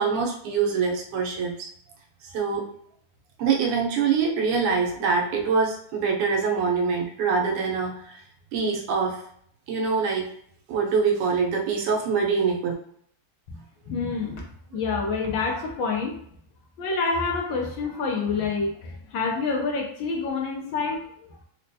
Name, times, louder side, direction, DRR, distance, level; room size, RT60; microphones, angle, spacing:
voice 1, 0.0-1.7 2.2-2.7 3.4-8.2 8.5-9.2 9.7-10.3 10.7-12.7, right 5 dB, 85° right, 0 dB, 1.7 m, -24 dB
voice 2, 13.9-14.4 14.7-16.1 16.8-21.3, left 4 dB, 75° left, 0 dB, 1.2 m, -27 dB
4.2 x 2.2 x 2.6 m, 0.64 s
omnidirectional pair, 2.4 m